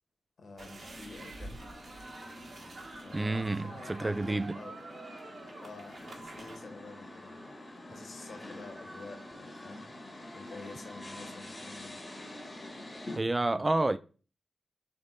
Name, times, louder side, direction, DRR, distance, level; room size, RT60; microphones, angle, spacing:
voice 1, 0.4-1.6 3.0-4.8 5.4-7.5 7.9-9.9 10.2-12.0, left 3 dB, 75° left, 1.3 m, -48 dB
sound 1, 0.6-6.6, right 2 dB, 65° right, 1.2 m, -47 dB
sound 2, 0.8-13.2, left 1 dB, 35° left, 1.6 m, -47 dB
voice 2, 3.1-4.6 13.2-14.0, right 2 dB, 30° right, 0.3 m, -29 dB
6.3 x 3.6 x 2.3 m
cardioid pair, 50°, 0 cm